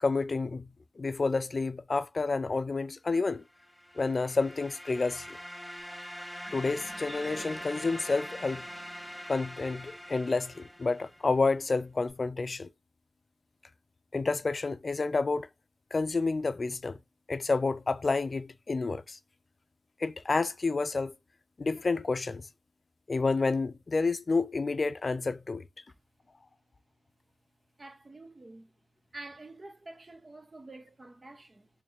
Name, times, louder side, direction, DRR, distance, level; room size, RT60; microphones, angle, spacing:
voice 1, 0.0-3.4 4.0-5.4 6.5-8.7 9.3-12.7 14.1-15.5 15.9-17.0 17.3-19.2 20.0-21.1 21.6-22.5 23.1-25.6, left 3 dB, 75° left, 0.3 m, -29 dB
sound 1, 3.6-11.3, equal, 5° left, 0.8 m, -43 dB
sound 2, 6.4-12.1, right 1 dB, 75° right, 1.2 m, -55 dB
voice 2, 27.8-28.7 29.1-31.7, right 2 dB, 55° right, 1.0 m, -48 dB
3.4 x 3.1 x 3.1 m
wide cardioid pair, 50°, 0 cm